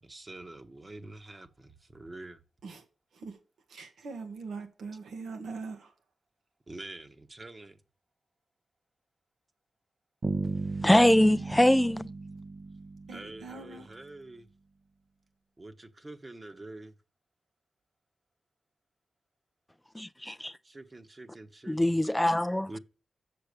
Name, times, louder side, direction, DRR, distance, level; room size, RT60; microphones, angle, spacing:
voice 1, 0.0-2.4 6.7-7.8 13.1-14.5 15.6-16.9 20.6-22.0 22.7-22.8, right 2 dB, 30° right, 1.2 m, -46 dB
voice 2, 3.7-5.9 13.1-14.0, right 4 dB, 90° right, 1.5 m, -42 dB
Bass guitar, 10.2-14.0, right 3 dB, 50° right, 0.8 m, -36 dB
voice 3, 10.8-12.1 19.9-20.5 21.7-22.7, left 1 dB, 10° left, 0.4 m, -23 dB
7.4 x 6.8 x 6.8 m
cardioid pair, 65°, 0 cm